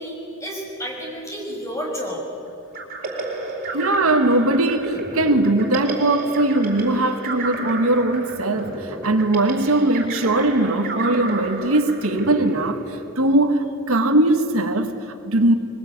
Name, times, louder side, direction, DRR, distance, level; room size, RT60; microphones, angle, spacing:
voice 1, 0.0-2.2, equal, 15° left, -2 dB, 6.2 m, -31 dB
sound 1, 2.7-13.3, right 2 dB, 45° right, 4.3 m, -31 dB
voice 2, 3.7-15.5, right 2 dB, 75° right, 7 dB, 1.5 m, -20 dB
23.0 x 20.5 x 9.4 m, 2.7 s
head